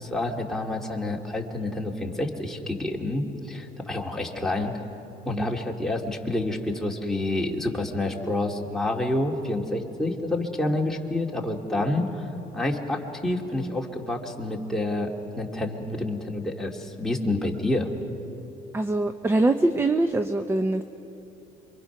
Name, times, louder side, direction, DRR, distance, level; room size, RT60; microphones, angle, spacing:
voice 1, 0.0-4.7 5.3-12.2 12.5-15.1 15.4-17.9, left 2 dB, ahead, -1 dB, 2.5 m, -28 dB
voice 2, 18.7-20.8, right 2 dB, 15° right, 9 dB, 0.8 m, -23 dB
27.5 x 24.5 x 6.0 m, 3.0 s
cardioid pair, 110°, 17 cm